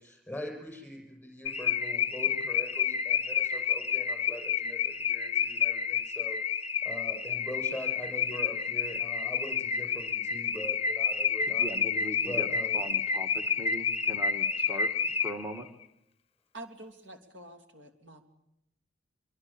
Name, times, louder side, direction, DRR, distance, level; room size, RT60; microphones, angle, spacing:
voice 1, 0.0-6.4 6.8-11.7 12.2-12.8, left 1 dB, 10° left, 4 dB, 7.1 m, -42 dB
Car / Alarm, 1.5-15.6, left 6 dB, 30° left, 1.0 m, -30 dB
voice 2, 11.5-12.5 12.7-14.9 15.2-15.7, equal, 10° right, 6 dB, 1.6 m, -40 dB
voice 3, 16.5-18.2, right 2 dB, 70° right, 7 dB, 3.2 m, -47 dB
24.5 x 24.5 x 8.8 m, 0.82 s
head